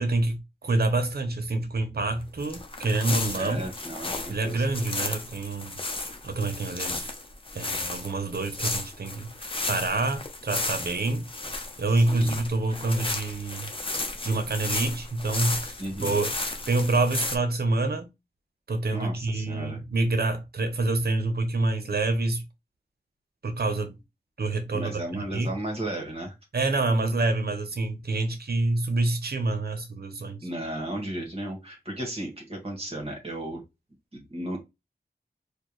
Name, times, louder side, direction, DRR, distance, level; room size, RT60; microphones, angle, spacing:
voice 1, 0.0-3.7 4.3-5.8 6.2-7.1 7.5-13.7 14.2-15.7 16.0-18.1 18.7-22.4 23.4-24.0 24.4-25.5 26.5-30.4, right 2 dB, 70° right, 0.9 m, -27 dB
sound 1, 2.4-17.4, left 2 dB, 30° left, 0.8 m, -34 dB
voice 2, 3.3-4.6 12.1-12.4 15.8-16.2 18.9-19.8 24.7-26.3 30.4-33.6 34.1-34.6, right 1 dB, 35° right, 1.5 m, -34 dB
4.4 x 2.3 x 3.1 m
wide cardioid pair, 80°, 17 cm